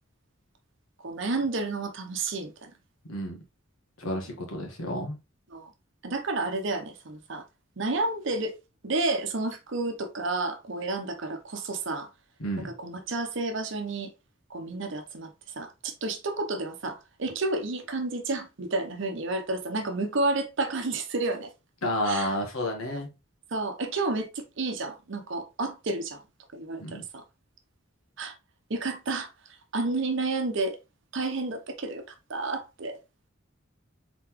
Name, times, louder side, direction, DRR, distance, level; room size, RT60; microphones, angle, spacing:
voice 1, 1.0-2.7 4.0-4.2 5.5-5.7 6.0-7.4 7.8-8.5 8.8-12.1 12.6-14.1 14.5-15.3 15.6-21.5 22.0-22.3 22.9-23.0 23.5-26.2 26.5-27.2 28.2-28.4 28.7-29.3 29.7-30.8 31.1-32.0 32.3-33.0, right 3 dB, 60° right, 0.8 m, -31 dB
voice 2, 4.0-5.2 12.4-12.7 21.8-23.1 26.8-27.0, equal, 90° left, 1.6 m, -30 dB
3.9 x 3.9 x 3.0 m
head